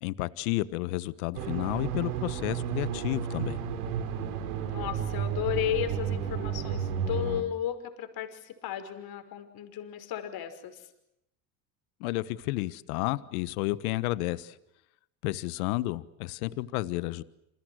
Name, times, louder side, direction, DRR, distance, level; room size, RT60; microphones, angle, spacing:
voice 1, 0.0-3.6 12.0-14.6 15.2-17.2, left 18 dB, 75° left, 16 dB, 1.4 m, -31 dB
sound 1, 1.3-7.4, right 7 dB, 85° right, 3.8 m, -32 dB
voice 2, 4.6-10.8, left 11 dB, 55° left, 8 dB, 5.6 m, -34 dB
29.5 x 28.0 x 6.4 m, 0.82 s
hypercardioid pair, 85°, 44 cm